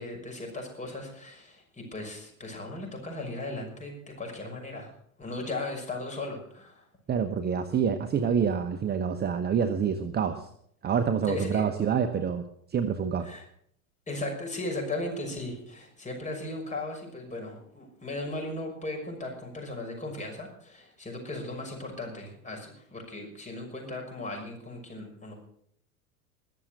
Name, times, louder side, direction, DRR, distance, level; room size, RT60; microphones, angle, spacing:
voice 1, 0.0-4.9 5.2-6.8 11.2-11.6 13.2-13.4 14.1-25.3, left 2 dB, 15° left, 1 dB, 6.2 m, -37 dB
voice 2, 7.1-10.5 10.8-12.4 12.7-13.3, right 7 dB, 20° right, 7 dB, 1.0 m, -27 dB
21.5 x 7.4 x 6.6 m, 0.67 s
hypercardioid pair, 95°, 44 cm